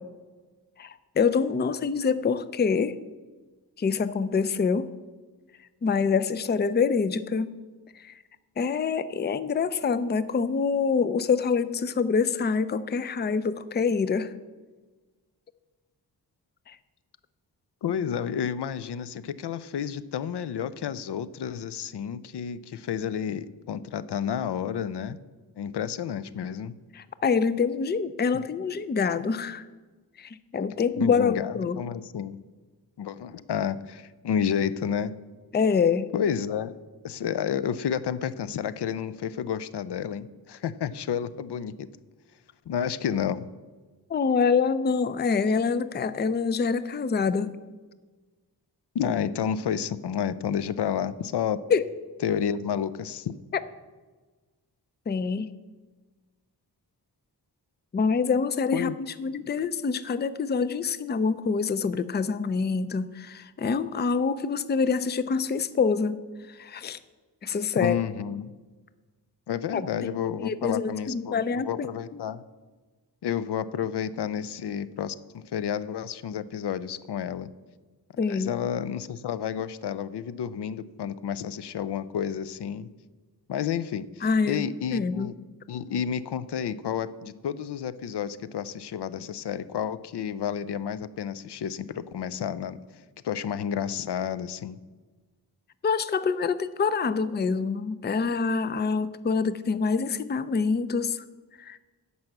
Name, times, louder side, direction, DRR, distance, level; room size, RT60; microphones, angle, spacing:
voice 1, 0.8-2.9 3.8-4.9 5.8-7.5 8.0-8.1 8.6-14.3 16.7-16.8 26.9-29.7 30.2-31.8 35.5-36.1 44.1-47.5 51.7-51.8 55.1-55.5 57.9-58.9 59.2-66.2 66.5-67.0 67.4-68.0 69.7-70.1 70.4-71.9 78.2-78.5 84.2-85.3 95.8-101.2 101.6-101.8, left 5 dB, 25° left, 15 dB, 0.4 m, -26 dB
voice 2, 17.8-25.2 25.6-26.7 31.0-32.4 33.0-35.1 36.1-36.8 37.0-41.9 42.7-43.5 48.9-51.6 52.2-53.3 58.7-59.0 67.8-68.5 69.5-72.4 73.2-77.5 78.3-82.9 83.5-85.4 85.7-94.8, left 8 dB, 85° left, 16 dB, 0.6 m, -30 dB
10.5 x 5.6 x 7.8 m, 1.3 s
wide cardioid pair, 125°, 40 cm